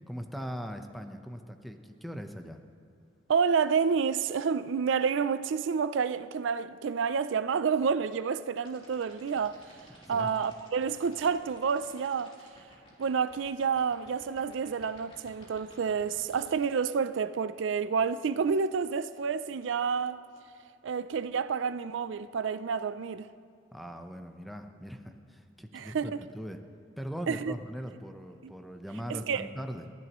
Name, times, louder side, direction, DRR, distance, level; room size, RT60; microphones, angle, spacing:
voice 1, 0.1-2.6 10.0-10.3 23.7-26.6 27.0-29.9, equal, ahead, 0.8 m, -40 dB
voice 2, 3.3-9.6 10.1-12.3 13.0-20.2 20.8-23.3 25.7-26.2 27.3-27.5 28.4-28.5 29.1-29.5, right 6 dB, 70° right, 0.4 m, -29 dB
sound 1, 8.6-16.5, left 1 dB, 30° left, 3.3 m, -55 dB
29.0 x 11.0 x 3.0 m
head